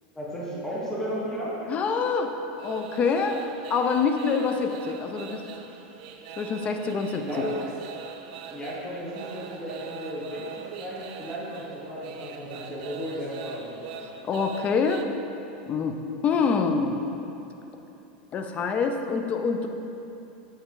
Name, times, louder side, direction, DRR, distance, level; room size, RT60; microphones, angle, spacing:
voice 1, 0.1-1.6 7.2-7.5 8.5-14.1, equal, 10° left, -7 dB, 1.2 m, -34 dB
voice 2, 1.7-2.3 2.6-3.4 3.7-5.4 6.4-7.2 14.2-15.1 15.7-17.0 18.3-19.7, left 5 dB, 30° left, 5 dB, 0.5 m, -26 dB
sound 1, 2.6-15.0, right 7 dB, 65° right, 0.4 m, -41 dB
7.2 x 4.3 x 3.8 m, 3.0 s
supercardioid pair, 130°, 4 cm